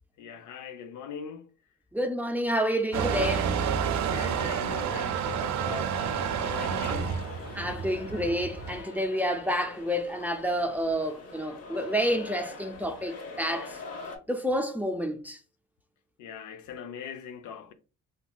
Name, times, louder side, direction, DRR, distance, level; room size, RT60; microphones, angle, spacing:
voice 1, 0.2-1.5 4.1-7.2 16.2-17.7, left 6 dB, 80° left, 0.5 m, -41 dB
voice 2, 1.9-3.5 7.5-13.7 14.3-15.4, equal, 5° right, 0.4 m, -29 dB
Motor vehicle (road) / Engine starting / Accelerating revving vroom, 2.9-8.8, right 7 dB, 65° right, 0.5 m, -30 dB
sound 1, 5.2-14.2, left 4 dB, 55° left, 0.9 m, -44 dB
3.3 x 2.7 x 2.2 m
cardioid pair, 90°, 30 cm